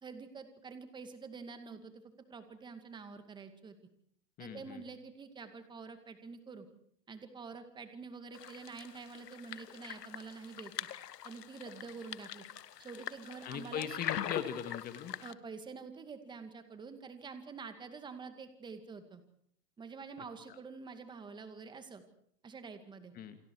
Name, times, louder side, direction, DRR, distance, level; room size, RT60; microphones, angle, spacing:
voice 1, 0.0-2.0 2.3-3.8 4.4-6.7 7.1-10.7 11.2-12.4 12.8-13.9 15.2-19.2 19.8-22.0 22.4-23.1, right 5 dB, 10° right, 8 dB, 2.2 m, -47 dB
voice 2, 4.4-4.8 13.4-15.1 23.2-23.4, left 9 dB, 20° left, 9 dB, 1.9 m, -39 dB
sound 1, 8.3-15.3, left 10 dB, 85° left, 1.6 m, -43 dB
29.0 x 25.0 x 4.8 m, 0.66 s
hypercardioid pair, 155°, 48 cm